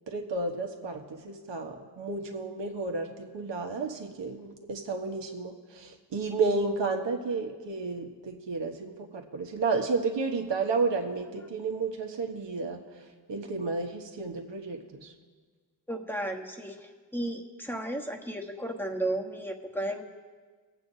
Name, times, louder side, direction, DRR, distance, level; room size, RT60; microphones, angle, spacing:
voice 1, 0.1-12.8 13.3-15.1, right 3 dB, 70° right, 3 dB, 1.3 m, -32 dB
voice 2, 15.9-20.0, right 1 dB, 5° left, 2 dB, 1.2 m, -34 dB
23.5 x 8.2 x 2.7 m, 1.5 s
cardioid pair, 75°, 45 cm